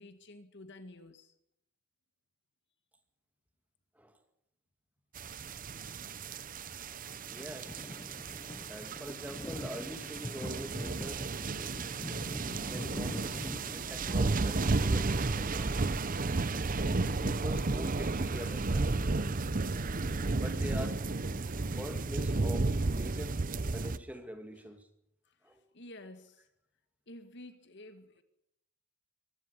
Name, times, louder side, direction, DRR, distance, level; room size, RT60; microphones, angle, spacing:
voice 1, 0.0-1.3 24.6-24.7 25.3-26.5 27.1-28.2, left 1 dB, 50° left, 1.9 m, -51 dB
sound 1, 5.2-24.0, right 3 dB, 40° right, 0.7 m, -33 dB
sound 2, 6.8-6.9 7.1-18.6 18.9-22.0, left 1 dB, 20° left, 0.8 m, -45 dB
voice 2, 7.3-8.4 8.7-11.9 12.7-15.8 16.8-19.0 20.2-21.0 21.5-23.4 23.7-24.9 25.4-25.6, equal, 5° right, 2.0 m, -45 dB
24.5 x 13.0 x 9.7 m
head